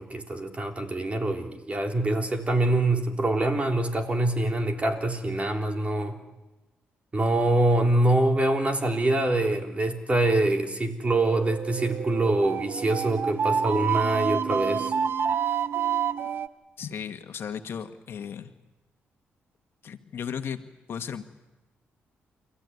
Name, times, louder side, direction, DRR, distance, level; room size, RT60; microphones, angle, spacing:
voice 1, 0.0-6.2 7.1-14.9, right 2 dB, 30° right, 3 dB, 3.6 m, -25 dB
sound 1, 11.0-16.5, right 7 dB, 60° right, 0.9 m, -28 dB
voice 2, 16.8-18.5 19.8-21.2, left 7 dB, 60° left, 7 dB, 1.5 m, -35 dB
29.5 x 14.5 x 9.6 m, 1.1 s
cardioid pair, 75°, 4 cm